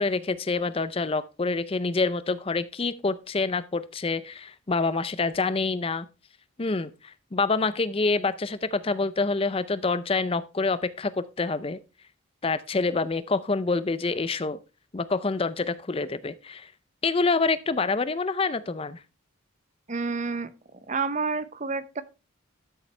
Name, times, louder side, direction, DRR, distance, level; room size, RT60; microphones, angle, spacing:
voice 1, 0.0-6.1 6.6-11.8 12.4-14.6 14.9-16.7 17.0-19.0, left 3 dB, 25° left, 0.5 m, -27 dB
voice 2, 19.9-20.5 20.9-22.0, right 4 dB, 35° right, 0.7 m, -29 dB
12.5 x 7.1 x 3.3 m
head